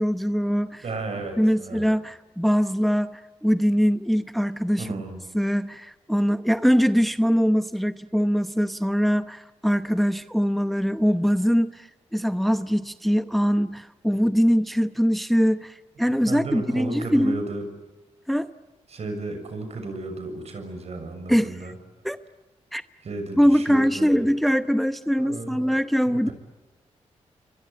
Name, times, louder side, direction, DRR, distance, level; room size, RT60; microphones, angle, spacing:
voice 1, 0.0-0.8 1.4-4.9 5.3-17.4 18.3-18.5 21.3-21.5 22.0-22.2 22.7-22.8 23.4-26.3, equal, ahead, 11 dB, 0.8 m, -22 dB
voice 2, 0.8-1.8 4.8-5.2 16.0-17.7 18.9-21.7 23.0-24.3 25.2-25.7 26.0-26.3, right 3 dB, 65° right, 7 dB, 6.8 m, -34 dB
29.0 x 24.0 x 8.4 m, 1.2 s
cardioid pair, 80°, 12 cm